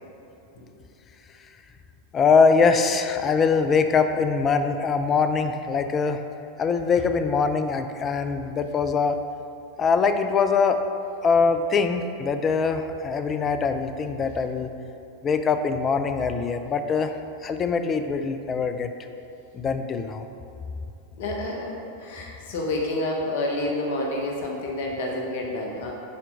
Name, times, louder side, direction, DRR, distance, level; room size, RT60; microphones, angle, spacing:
voice 1, 2.1-6.2 6.6-9.2 9.8-10.8 11.2-14.7 15.2-17.1 17.4-18.9 19.5-20.3, left 5 dB, 30° left, 8 dB, 0.5 m, -22 dB
voice 2, 21.2-25.9, left 1 dB, 60° left, -1 dB, 1.3 m, -29 dB
9.4 x 4.4 x 4.0 m, 2.8 s
figure-of-eight pair, 90°, 0 cm